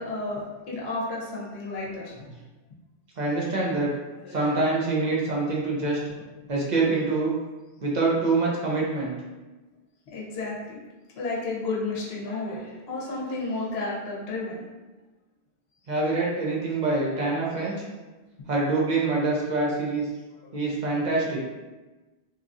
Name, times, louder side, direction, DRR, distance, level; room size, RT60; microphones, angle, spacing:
voice 1, 0.0-2.4 4.2-4.6 10.1-10.8 11.2-14.6 17.4-17.8 20.4-20.5, left 2 dB, 70° left, -4 dB, 0.9 m, -32 dB
voice 2, 3.2-3.9 4.3-6.0 6.5-7.3 7.8-9.2 15.9-17.7 18.5-20.0 20.5-21.4, right 3 dB, 50° right, -4 dB, 0.6 m, -25 dB
2.8 x 2.3 x 2.5 m, 1.2 s
omnidirectional pair, 1.1 m